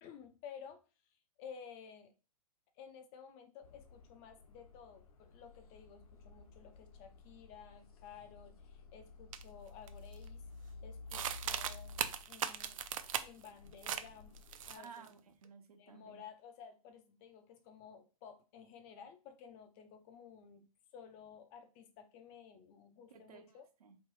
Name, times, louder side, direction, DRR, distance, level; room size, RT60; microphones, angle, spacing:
voice 1, 0.0-0.8 1.4-2.1 2.8-10.4 10.8-15.0 15.8-20.7 20.9-23.7, left 7 dB, 20° left, 7 dB, 0.4 m, -54 dB
sound 1, 3.6-14.8, left 3 dB, 80° left, 1.0 m, -54 dB
sound 2, 9.3-9.4 9.9-10.3 11.1-13.5 13.8-14.1 14.4-15.1, right 9 dB, 65° right, 0.5 m, -38 dB
voice 2, 14.8-16.2 23.1-24.0, right 6 dB, 90° right, 5 dB, 1.1 m, -55 dB
3.1 x 2.9 x 4.5 m, 0.34 s
hypercardioid pair, 160°, 19 cm